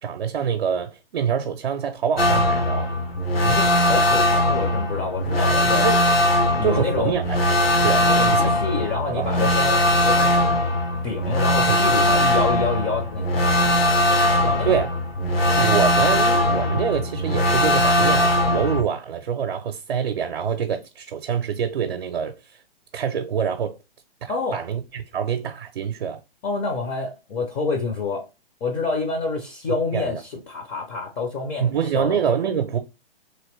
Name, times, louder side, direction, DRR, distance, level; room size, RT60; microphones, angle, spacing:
voice 1, 0.0-2.9 5.8-6.0 6.6-7.4 7.8-8.4 9.1-9.3 11.7-12.2 14.7-14.9 15.6-22.6 22.9-23.8 24.2-26.2 29.9-30.2 31.6-32.8, right 7 dB, 60° right, 0.6 m, -25 dB
sound 1, 2.2-18.8, left 1 dB, 75° left, 1.1 m, -20 dB
voice 2, 3.4-5.9 6.6-7.2 8.0-10.5 11.0-14.8 24.3-24.6 26.4-28.2 28.6-32.4, left 4 dB, 20° left, 0.5 m, -28 dB
3.0 x 2.9 x 3.1 m
figure-of-eight pair, 120°, 30 cm